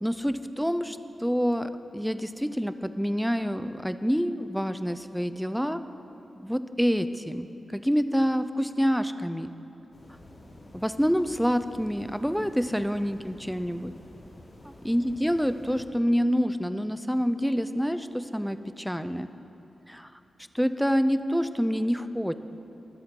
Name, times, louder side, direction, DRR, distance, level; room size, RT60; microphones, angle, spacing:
voice 1, 0.0-5.8 6.4-7.5 7.7-9.5 10.7-13.9 14.6-19.3 19.9-20.1 20.5-22.4, equal, ahead, 11 dB, 0.4 m, -27 dB
sound 1, 9.9-15.9, left 1 dB, 45° left, 3.1 m, -49 dB
23.0 x 7.7 x 3.7 m, 2.9 s
wide cardioid pair, 155°, 0 cm